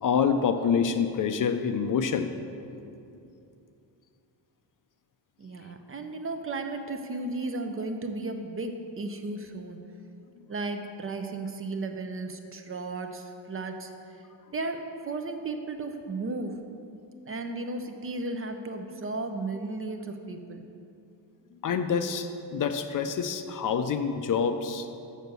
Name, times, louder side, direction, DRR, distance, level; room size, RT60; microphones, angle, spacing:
voice 1, 0.0-2.3 21.6-24.9, left 6 dB, 50° left, 9 dB, 0.5 m, -26 dB
voice 2, 5.4-9.8 10.5-14.2 14.5-16.6 17.2-20.7, right 2 dB, 30° right, 6 dB, 0.5 m, -34 dB
6.5 x 6.2 x 6.7 m, 2.6 s
wide cardioid pair, 150°, 43 cm